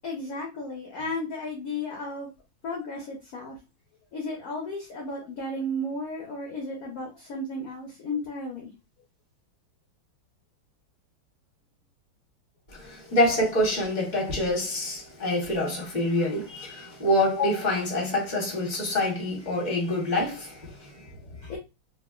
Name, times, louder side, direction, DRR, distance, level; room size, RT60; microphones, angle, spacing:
voice 1, 0.0-2.3 2.6-3.6 4.1-8.7 21.5-21.6, left 1 dB, 60° left, 1.0 m, -34 dB
voice 2, 12.7-21.5, left 1 dB, 30° left, 1.1 m, -26 dB
3.3 x 2.8 x 2.3 m
omnidirectional pair, 2.2 m